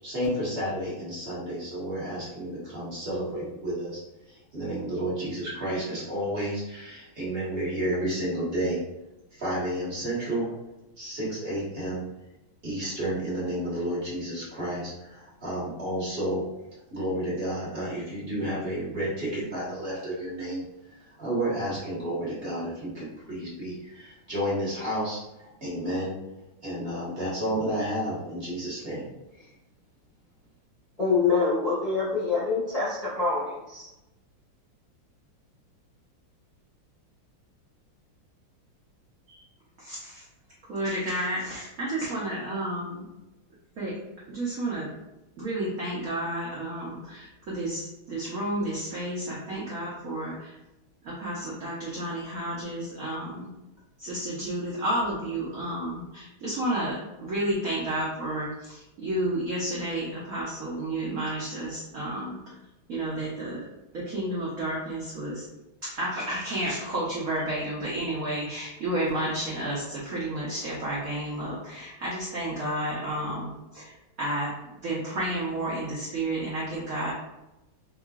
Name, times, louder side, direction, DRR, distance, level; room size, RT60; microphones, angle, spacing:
voice 1, 0.0-4.0 4.3-8.8 9.3-10.5 11.0-12.1 12.6-16.4 16.9-20.6 21.2-26.2 26.6-29.1 29.4-29.5, right 1 dB, 35° right, -8 dB, 1.2 m, -31 dB
voice 2, 31.0-33.9, left 4 dB, 30° left, -10 dB, 0.7 m, -25 dB
voice 3, 39.8-40.2 40.7-43.1 43.8-44.0 44.3-44.9 45.4-50.6 51.0-53.5 54.0-62.4 62.9-63.6 63.9-65.5 65.8-74.5 74.8-77.1, right 1 dB, 60° right, -6 dB, 0.9 m, -31 dB
4.7 x 2.4 x 2.4 m, 0.95 s
omnidirectional pair, 2.3 m